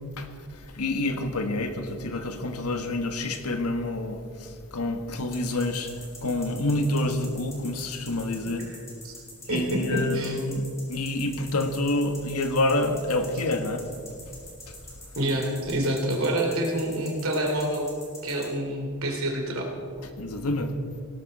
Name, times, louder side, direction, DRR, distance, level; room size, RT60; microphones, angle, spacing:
voice 1, 0.7-5.9 6.2-8.7 9.5-13.8 20.2-20.7, left 2 dB, 90° left, 6 dB, 1.4 m, -27 dB
sound 1, 5.3-18.5, left 2 dB, 15° left, 2.9 m, -44 dB
voice 2, 9.5-10.4 15.1-17.9 18.2-19.7, right 1 dB, 70° right, 1 dB, 2.9 m, -27 dB
17.5 x 13.0 x 4.2 m, 2.4 s
head